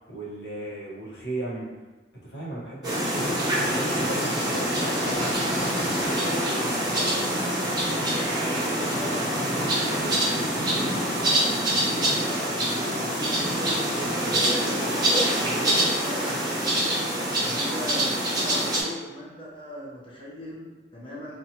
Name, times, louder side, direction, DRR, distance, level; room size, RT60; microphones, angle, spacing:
voice 1, 0.1-1.7 2.2-3.1 3.7-5.2, right 1 dB, 70° left, -6 dB, 0.9 m, -36 dB
sound 1, 2.8-18.8, right 1 dB, 25° right, 0.8 m, -25 dB
voice 2, 4.5-7.2 7.6-13.8 14.2-17.1 17.4-21.4, equal, 30° left, -6 dB, 0.7 m, -39 dB
2.7 x 2.3 x 2.8 m, 1.3 s
head